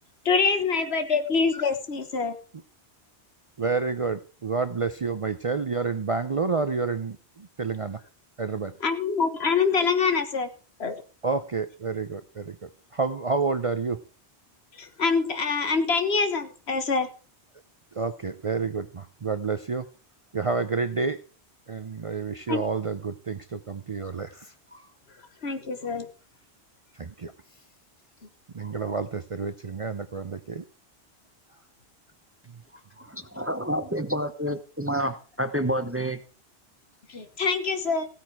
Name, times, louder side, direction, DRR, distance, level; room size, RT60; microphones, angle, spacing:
voice 1, 0.3-2.4 8.8-10.5 10.8-11.0 14.8-17.1 22.5-22.6 25.4-26.1 37.1-38.1, left 5 dB, 75° left, 9 dB, 1.6 m, -25 dB
voice 2, 3.6-8.0 8.4-8.7 11.2-14.0 17.9-19.9 20.3-21.2 21.7-24.9 25.8-25.9 26.9-27.3 28.5-30.7 32.5-33.1, right 4 dB, 40° right, 11 dB, 0.6 m, -29 dB
voice 3, 33.4-36.2, equal, 15° right, 10 dB, 1.0 m, -28 dB
15.5 x 8.9 x 4.8 m, 0.37 s
omnidirectional pair, 1.1 m